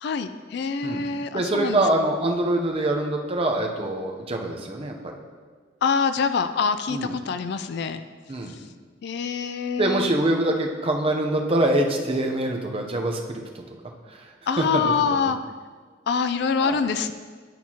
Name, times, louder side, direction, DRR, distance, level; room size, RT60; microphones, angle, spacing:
voice 1, 0.0-1.8 5.8-8.0 9.0-10.1 14.5-15.4 16.1-17.1, left 5 dB, 60° left, 10 dB, 0.3 m, -25 dB
voice 2, 1.3-5.2 6.9-7.1 8.3-8.5 9.8-13.6 14.1-14.3 14.6-15.3 16.6-16.8, right 1 dB, 30° right, 2 dB, 0.6 m, -25 dB
10.5 x 4.4 x 2.8 m, 1.5 s
head